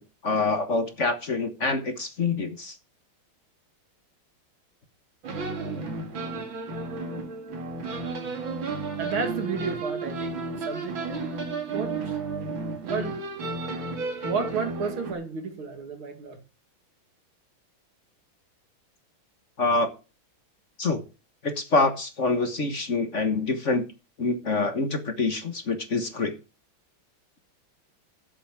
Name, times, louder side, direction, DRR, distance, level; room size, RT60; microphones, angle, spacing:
voice 1, 0.2-2.7 19.6-19.9 20.8-21.0 21.4-23.8 24.2-26.3, left 3 dB, 40° left, 7 dB, 1.5 m, -26 dB
sound 1, 5.2-15.1, right 3 dB, 70° right, 2.9 m, -33 dB
voice 2, 9.0-11.2 11.7-12.2 12.8-13.2 14.2-16.4, right 5 dB, 85° right, 5 dB, 3.0 m, -32 dB
11.0 x 8.0 x 6.0 m, 0.32 s
omnidirectional pair, 2.3 m